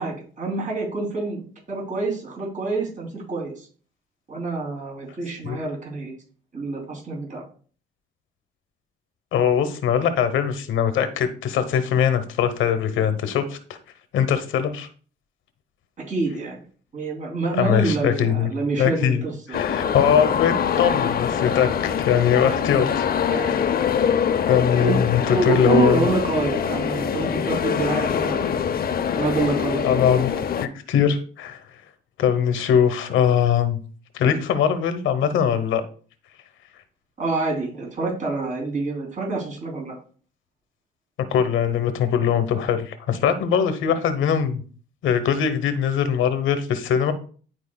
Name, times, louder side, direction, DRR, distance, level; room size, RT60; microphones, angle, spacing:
voice 1, 0.0-1.4 1.7-3.7 4.3-6.1 6.5-7.4 16.0-16.6 16.9-19.6 23.3-23.6 24.8-28.6 29.1-30.2 37.2-39.9, right 3 dB, 40° right, -2 dB, 3.1 m, -27 dB
voice 2, 9.3-13.8 14.1-14.9 17.6-18.5 18.8-19.2 19.5-23.1 23.3-23.7 24.5-26.1 29.8-30.3 30.6-31.6 32.2-33.8 34.1-35.8 41.3-44.6 45.0-47.1, left 8 dB, 80° left, 11 dB, 1.0 m, -21 dB
sound 1, 19.5-30.7, left 8 dB, 50° left, 0.6 m, -24 dB
11.0 x 4.5 x 2.3 m, 0.42 s
cardioid pair, 90°, 20 cm